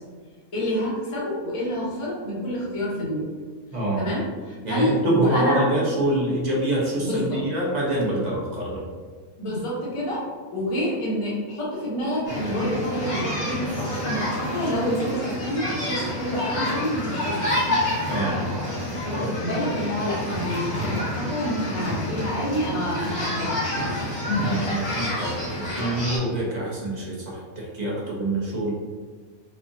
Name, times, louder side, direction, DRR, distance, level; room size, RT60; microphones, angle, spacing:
voice 1, 0.5-3.3 4.0-5.6 7.0-7.4 9.4-10.2 10.5-17.5 19.0-23.8, equal, 25° left, -7 dB, 1.0 m, -28 dB
voice 2, 3.7-4.0 4.6-8.8 18.1-18.7 19.1-19.3 24.4-25.4 25.8-28.7, right 1 dB, 35° right, -4 dB, 0.8 m, -25 dB
sound 1, 12.3-26.2, left 1 dB, 90° left, 1.7 m, -28 dB
4.5 x 2.4 x 2.6 m, 1.5 s
omnidirectional pair, 1.5 m